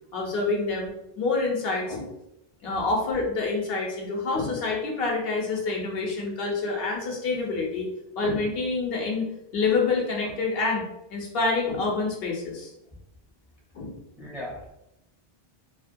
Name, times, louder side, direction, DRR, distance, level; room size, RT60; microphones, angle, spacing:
voice 1, 0.1-0.9 1.2-2.1 2.6-7.9 8.2-12.7 13.7-13.9, left 3 dB, 70° left, -1 dB, 0.9 m, -27 dB
voice 2, 14.2-14.7, left 1 dB, ahead, -4 dB, 0.4 m, -38 dB
2.8 x 2.1 x 2.5 m, 0.83 s
omnidirectional pair, 1.0 m